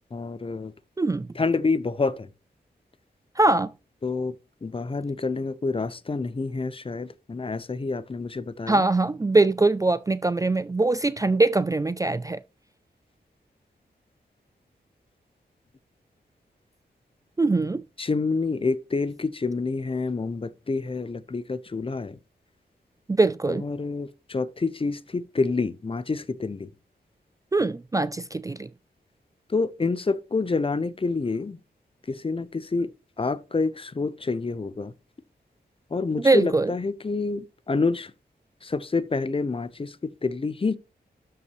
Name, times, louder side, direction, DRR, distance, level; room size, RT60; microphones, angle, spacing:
voice 1, 0.1-0.7 1.3-2.3 4.0-4.3 4.6-8.8 18.0-22.2 23.5-26.7 29.5-31.6 32.1-32.9 33.2-34.9 35.9-38.1 38.6-40.8, left 3 dB, 30° left, 0.7 m, -28 dB
voice 2, 1.0-1.3 3.4-3.7 8.7-12.4 17.4-17.8 23.1-23.6 27.5-28.7 36.2-36.7, right 2 dB, 20° right, 0.4 m, -22 dB
12.5 x 5.5 x 3.1 m
wide cardioid pair, 135°, 17 cm